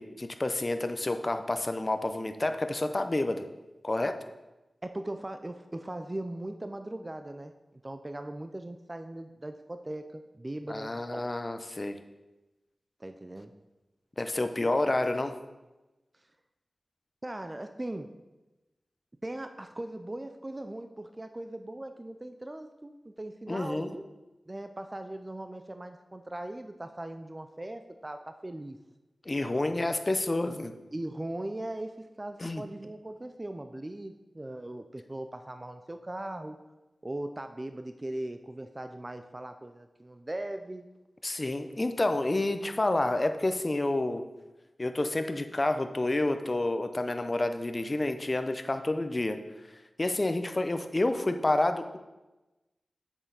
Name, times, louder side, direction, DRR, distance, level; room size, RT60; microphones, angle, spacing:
voice 1, 0.0-3.4 3.8-4.1 10.7-12.0 14.2-15.4 23.5-23.9 29.3-30.7 32.4-32.6 41.2-44.2 44.8-49.4 50.0-52.0, left 2 dB, 35° left, 8 dB, 0.7 m, -29 dB
voice 2, 4.8-11.2 13.0-13.5 17.2-18.1 19.2-24.1 24.5-28.8 30.9-36.6 37.0-40.9, right 1 dB, 25° right, 7 dB, 0.5 m, -39 dB
7.9 x 6.3 x 4.0 m, 1.1 s
wide cardioid pair, 65°, 0 cm